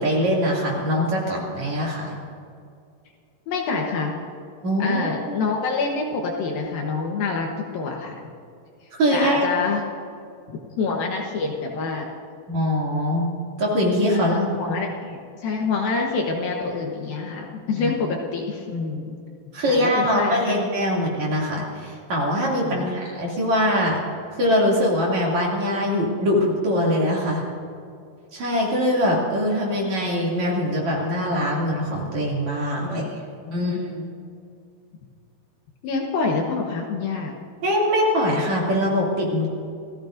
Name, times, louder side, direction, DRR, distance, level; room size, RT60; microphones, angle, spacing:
voice 1, 0.0-2.2 4.6-5.0 5.3-5.4 9.0-9.5 12.5-13.3 13.6-14.3 17.8-17.9 19.5-24.0 24.3-27.4 28.3-33.1 33.5-34.1 37.6-39.5, equal, 45° right, -4 dB, 3.4 m, -22 dB
voice 2, 3.5-4.2 4.8-8.2 9.1-9.8 10.8-12.1 14.1-19.2 19.6-20.6 22.6-22.9 32.8-33.1 33.5-33.8 35.8-37.3, left 4 dB, 65° left, 0 dB, 2.6 m, -26 dB
27.5 x 16.5 x 2.6 m, 2.3 s
omnidirectional pair, 5.1 m